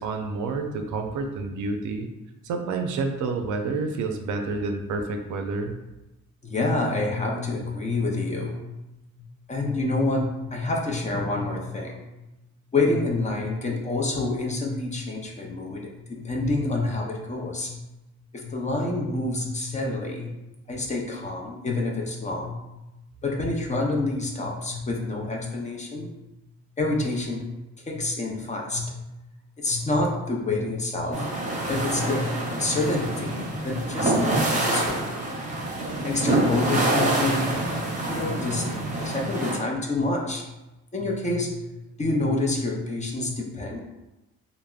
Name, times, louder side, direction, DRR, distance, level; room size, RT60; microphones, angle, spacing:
voice 1, 0.0-2.1 2.4-5.8, right 3 dB, 75° right, 4 dB, 0.5 m, -29 dB
voice 2, 6.4-8.8 9.5-12.0 12.7-15.8 16.2-17.8 18.3-20.3 20.7-22.6 23.2-26.1 26.8-27.6 27.9-29.1 29.6-31.3 31.7-35.2 36.0-40.4 40.9-43.8, left 2 dB, 25° left, -1 dB, 0.5 m, -27 dB
sound 1, 31.1-39.6, right 2 dB, 25° right, 0.8 m, -26 dB
3.3 x 2.0 x 2.3 m, 1.0 s
cardioid pair, 90°, 30 cm